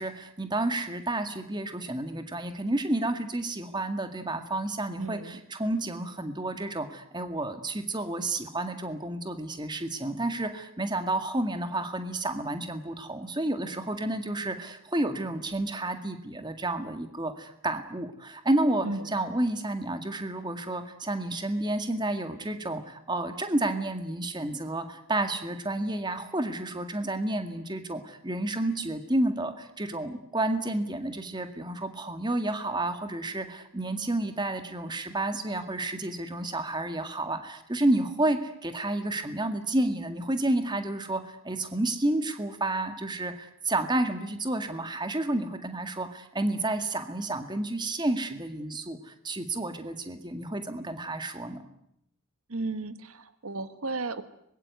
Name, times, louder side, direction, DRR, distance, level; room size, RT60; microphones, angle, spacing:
voice 1, 0.0-51.6, right 2 dB, 20° right, 8 dB, 2.0 m, -30 dB
voice 2, 5.0-5.4 18.8-19.1 52.5-54.2, right 3 dB, 75° right, 11 dB, 1.6 m, -34 dB
24.5 x 21.5 x 9.4 m, 0.76 s
head